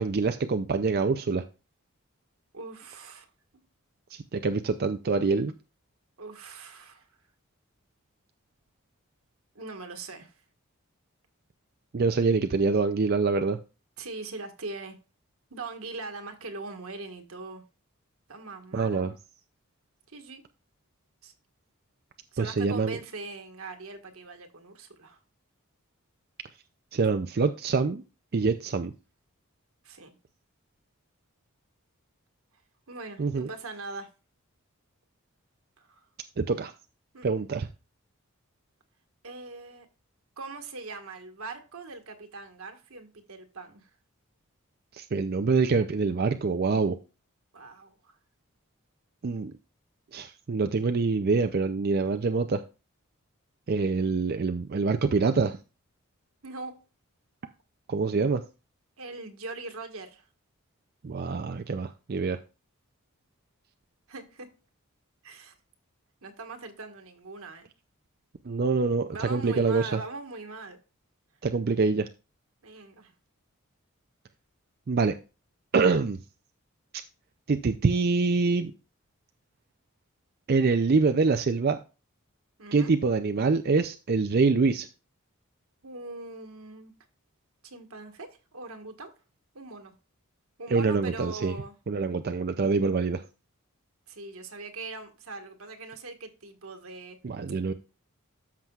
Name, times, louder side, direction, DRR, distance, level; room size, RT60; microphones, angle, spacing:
voice 1, 0.0-1.4 4.1-5.5 11.9-13.6 18.7-19.1 22.4-23.0 26.9-28.0 28.3-28.9 33.2-33.5 36.4-36.7 37.2-37.7 44.9-47.0 49.2-49.5 50.1-52.6 53.7-55.6 57.9-58.4 61.0-62.4 68.5-70.0 71.4-72.1 74.9-75.2 75.7-76.2 77.5-78.7 80.5-81.8 82.7-84.9 90.7-91.5 91.9-93.2 97.2-97.7, right 4 dB, 45° right, 0.4 m, -25 dB
voice 2, 2.5-3.3 3.5-3.6 6.2-7.1 9.5-10.3 14.0-15.0 15.5-17.6 18.3-19.1 20.1-20.4 21.2-21.3 22.3-25.2 29.8-30.1 32.9-34.1 35.8-36.0 37.1-37.3 39.2-39.9 40.4-43.9 47.5-48.2 56.4-56.8 59.0-60.3 64.1-64.5 65.2-65.5 66.2-67.7 69.1-70.8 72.6-73.1 82.6-82.9 85.8-86.9 87.6-89.1 89.5-89.9 90.6-91.8 94.1-97.2, right 3 dB, 80° right, 1.6 m, -41 dB
13.0 x 6.0 x 2.4 m
head